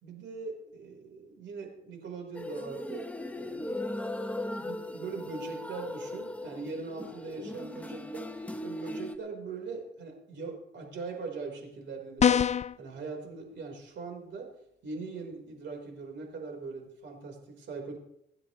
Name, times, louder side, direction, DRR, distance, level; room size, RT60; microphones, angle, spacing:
voice 1, 0.0-4.1 4.6-8.3 8.6-12.5 12.8-14.6 14.8-18.0, right 4 dB, 65° right, 2 dB, 4.7 m, -41 dB
sound 1, 2.3-9.2, left 1 dB, 5° left, 1.1 m, -38 dB
sound 2, 12.2-12.8, left 8 dB, 35° left, 0.5 m, -23 dB
26.5 x 9.7 x 3.3 m, 0.76 s
cardioid pair, 90°, 20 cm